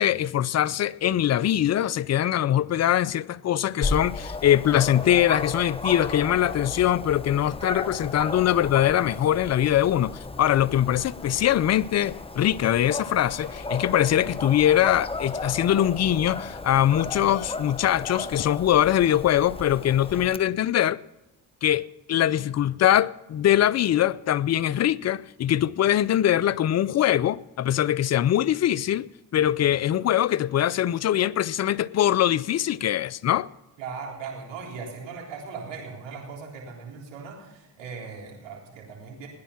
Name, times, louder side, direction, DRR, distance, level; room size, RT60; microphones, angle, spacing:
voice 1, 0.0-21.0 21.6-29.1 29.3-33.5, left 11 dB, 40° left, 0.5 m, -22 dB
Dog, 3.8-20.4, left 3 dB, 15° left, 0.9 m, -35 dB
sound 1, 12.6-14.2 16.0-18.1, left 5 dB, 60° left, 7.2 m, -54 dB
voice 2, 33.8-39.3, right 5 dB, 75° right, 3.8 m, -38 dB
18.5 x 10.5 x 5.8 m
supercardioid pair, 65°, 44 cm